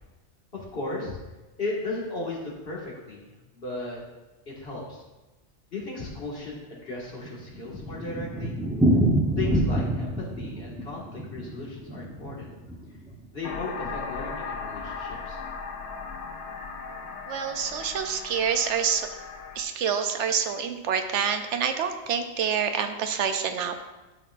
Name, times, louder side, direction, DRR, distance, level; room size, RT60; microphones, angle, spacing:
voice 1, 0.5-1.1 1.6-3.2 3.5-4.0 4.6-5.0 5.7-8.6 9.3-12.5 13.3-15.4, left 2 dB, 55° left, -4 dB, 2.1 m, -35 dB
Thunder, 6.9-13.2 13.4-13.5 13.8-13.9 14.2-14.3 14.8-15.2, right 1 dB, 5° right, 0.8 m, -27 dB
sound 1, 13.4-19.6, left 5 dB, 70° left, 1.0 m, -37 dB
voice 2, 17.3-19.1 19.6-23.8, right 7 dB, 75° right, 7 dB, 0.9 m, -27 dB
12.0 x 5.8 x 2.5 m, 1.1 s
omnidirectional pair, 1.2 m